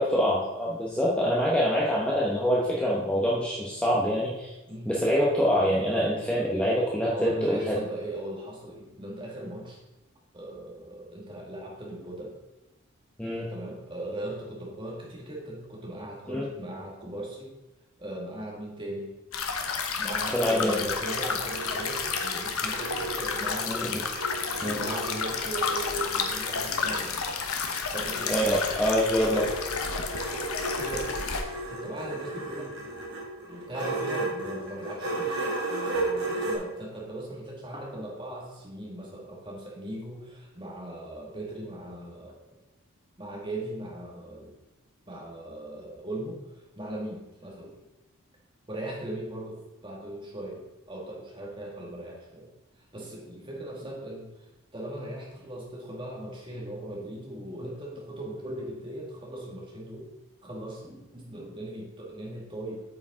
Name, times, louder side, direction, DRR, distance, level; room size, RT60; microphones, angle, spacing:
voice 1, 0.0-4.5 4.9-7.7 13.2-13.5 16.3-16.4 20.3-20.8 23.7-23.8 24.6-24.8 28.3-29.5, equal, 5° left, -5 dB, 0.9 m, -25 dB
voice 2, 7.1-9.8 10.3-12.4 13.5-17.5 18.0-19.1 20.0-24.0 24.6-27.2 27.9-28.3 30.7-31.1 31.7-32.8 33.4-35.3 35.7-42.6 43.2-44.5 45.1-46.5 46.8-47.7 48.7-52.5 52.9-54.3 54.7-60.1 60.4-62.8, right 1 dB, 20° right, -2 dB, 2.0 m, -38 dB
sound 1, 19.3-31.4, left 5 dB, 80° left, 1.0 m, -31 dB
sound 2, 20.7-23.8 24.1-27.1 28.0-36.6, right 2 dB, 55° right, 2.1 m, -34 dB
8.7 x 7.0 x 3.7 m, 0.99 s
head